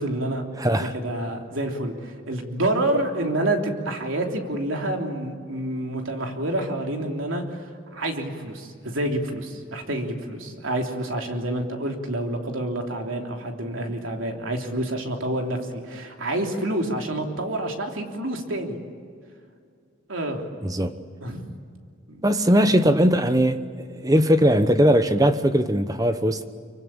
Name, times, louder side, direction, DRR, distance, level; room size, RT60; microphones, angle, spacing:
voice 1, 0.0-0.4 0.9-7.6 7.9-18.8 20.1-20.5 21.2-21.5 22.1-22.2, right 1 dB, 85° right, 3.3 m, -28 dB
voice 2, 0.6-0.9 20.6-20.9 22.2-26.4, equal, 20° right, 1.0 m, -20 dB
25.5 x 24.0 x 8.8 m
head